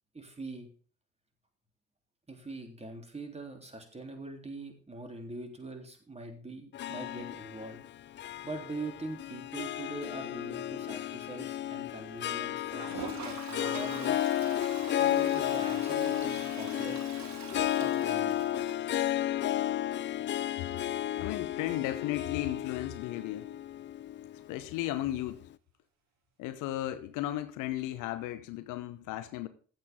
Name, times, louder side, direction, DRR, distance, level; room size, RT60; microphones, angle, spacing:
voice 1, 0.1-0.7 2.3-7.8 8.4-14.2 15.0-17.0 17.8-18.4, right 2 dB, 15° right, 3.5 m, -43 dB
Harp, 6.7-25.2, left 12 dB, 30° left, 0.5 m, -33 dB
Toilet flush, 12.6-19.4 19.7-19.8 20.0-20.1 20.3-20.4 23.0-23.1 24.4-24.5, right 9 dB, 50° right, 1.5 m, -45 dB
voice 2, 21.2-23.5 24.5-25.4 26.4-29.5, left 14 dB, 60° left, 1.1 m, -35 dB
15.0 x 8.4 x 3.7 m
figure-of-eight pair, 50°, 36 cm